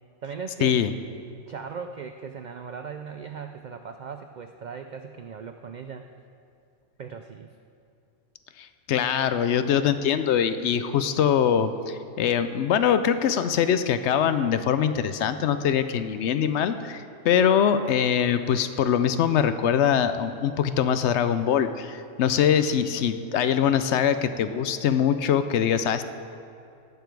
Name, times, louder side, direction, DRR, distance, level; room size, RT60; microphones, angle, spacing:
voice 1, 0.2-0.9 1.5-6.1 7.0-7.5, right 6 dB, 70° right, 7 dB, 0.4 m, -38 dB
voice 2, 8.6-26.0, left 8 dB, 70° left, 11 dB, 0.8 m, -23 dB
18.0 x 6.9 x 4.6 m, 2.6 s
omnidirectional pair, 1.3 m